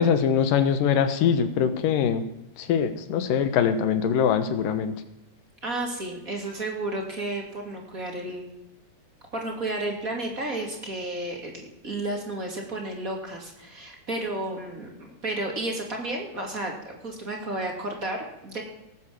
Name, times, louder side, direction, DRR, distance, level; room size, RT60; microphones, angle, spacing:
voice 1, 0.0-2.3 2.6-5.0, left 7 dB, 85° left, 11 dB, 2.8 m, -23 dB
voice 2, 5.6-8.5 9.3-18.6, right 2 dB, 25° right, 0 dB, 2.7 m, -32 dB
18.0 x 9.3 x 7.7 m, 0.93 s
omnidirectional pair, 3.8 m